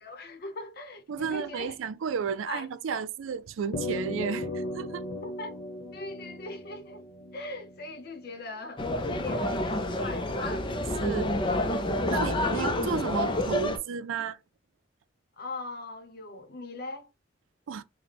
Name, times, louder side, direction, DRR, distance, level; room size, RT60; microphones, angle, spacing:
voice 1, 0.0-1.7 2.5-3.0 5.2-5.6 5.9-7.0 7.3-8.8 9.1-10.7 12.5-12.7 15.4-17.1, left 2 dB, 50° left, 0.8 m, -40 dB
voice 2, 1.1-5.0 11.0-11.4 12.1-14.4 17.7-17.8, right 6 dB, 85° right, 0.4 m, -33 dB
sound 1, 3.7-8.3, left 1 dB, 85° left, 0.9 m, -37 dB
sound 2, 8.8-13.8, left 1 dB, 25° left, 0.5 m, -28 dB
4.0 x 2.2 x 3.3 m
head